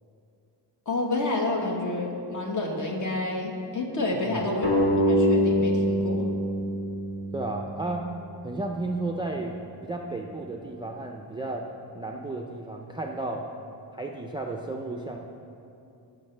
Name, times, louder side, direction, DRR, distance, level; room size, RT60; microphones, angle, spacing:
voice 1, 0.9-6.3, left 2 dB, 45° left, 0 dB, 1.3 m, -29 dB
voice 2, 4.1-4.4 7.3-8.1 8.4-9.6 9.8-11.7 12.0-13.5 13.9-15.2, right 2 dB, 10° right, 1 dB, 0.4 m, -33 dB
sound 1, 4.6-7.8, equal, 70° left, 2.0 m, -24 dB
17.0 x 6.3 x 3.3 m, 2.7 s
wide cardioid pair, 160°, 43 cm